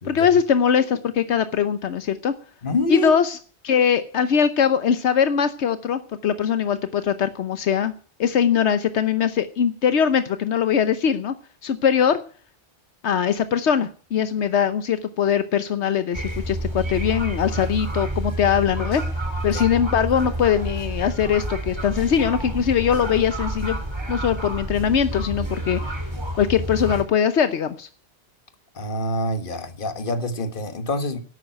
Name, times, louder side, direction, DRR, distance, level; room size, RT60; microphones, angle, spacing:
voice 1, 0.0-2.3 2.9-3.4 3.6-7.9 8.2-11.3 11.6-12.2 13.0-19.0 19.4-23.8 24.1-25.9 26.3-27.9, left 8 dB, 80° left, 1.1 m, -21 dB
voice 2, 2.6-3.1 19.5-19.6 28.7-31.2, left 1 dB, 50° left, 1.5 m, -26 dB
sound 1, 16.1-27.0, right 1 dB, 25° right, 2.3 m, -29 dB
11.5 x 8.8 x 9.0 m
omnidirectional pair, 1.1 m